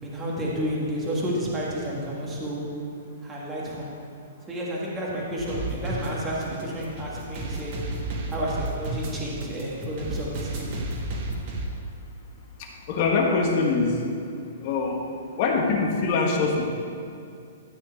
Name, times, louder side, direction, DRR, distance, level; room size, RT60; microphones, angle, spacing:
voice 1, 0.0-2.6 3.2-3.9 4.5-7.8 8.3-10.8, equal, 10° right, -5 dB, 1.6 m, -31 dB
sound 1, 5.4-11.7, right 2 dB, 35° right, 1.5 m, -32 dB
voice 2, 12.6-14.0 14.6-15.0 15.4-16.7, left 4 dB, 30° left, 0 dB, 1.4 m, -23 dB
13.0 x 4.4 x 8.1 m, 2.5 s
hypercardioid pair, 170°, 0 cm